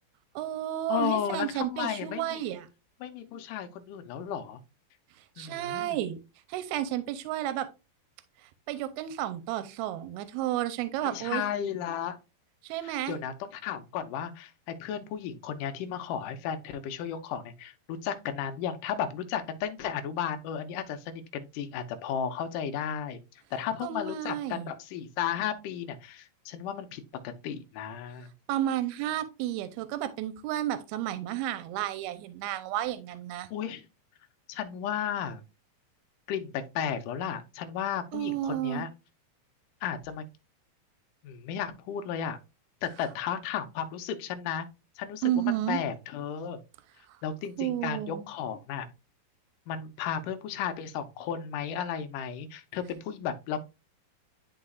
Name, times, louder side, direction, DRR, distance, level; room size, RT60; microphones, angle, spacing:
voice 1, 0.4-2.7 5.4-6.2 6.5-7.7 8.4-11.4 12.6-13.2 23.8-24.7 28.5-33.5 38.1-38.9 45.2-45.8 47.6-48.3, right 12 dB, 85° right, 2.5 m, -32 dB
voice 2, 0.9-2.4 3.0-4.6 5.4-6.0 11.0-12.2 12.8-23.2 23.5-28.3 33.5-33.9 34.5-35.4 36.3-38.9 39.8-40.2 41.2-42.4 42.8-44.7 45.0-46.6 47.2-48.9 49.7-53.6, left 8 dB, 75° left, 2.0 m, -34 dB
11.5 x 3.9 x 2.3 m
omnidirectional pair, 4.5 m